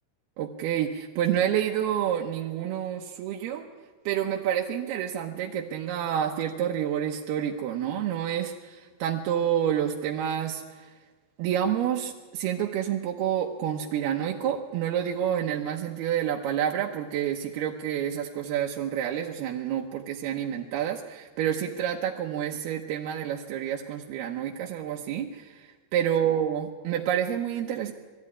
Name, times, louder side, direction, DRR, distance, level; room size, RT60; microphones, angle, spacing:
voice 1, 0.4-3.7 4.1-10.6 11.4-25.7 25.9-27.9, right 10 dB, 80° right, 0 dB, 2.9 m, -28 dB
20.5 x 14.0 x 9.8 m, 1.4 s
omnidirectional pair, 4.6 m